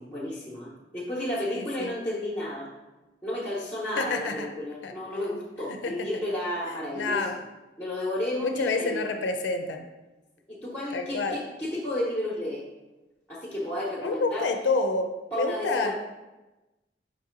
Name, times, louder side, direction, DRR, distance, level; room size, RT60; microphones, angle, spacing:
voice 1, 0.0-2.7 3.2-7.3 7.8-9.1 10.5-12.6 13.3-14.5 15.3-15.9, left 1 dB, 10° left, -5 dB, 0.8 m, -32 dB
voice 2, 1.5-1.9 4.0-4.5 4.8-4.9 5.7-6.1 6.9-7.3 8.4-9.8 10.9-11.4 14.0-15.1 15.3-15.9, left 3 dB, 85° left, 5 dB, 0.4 m, -28 dB
5.1 x 2.7 x 3.8 m, 1.1 s
head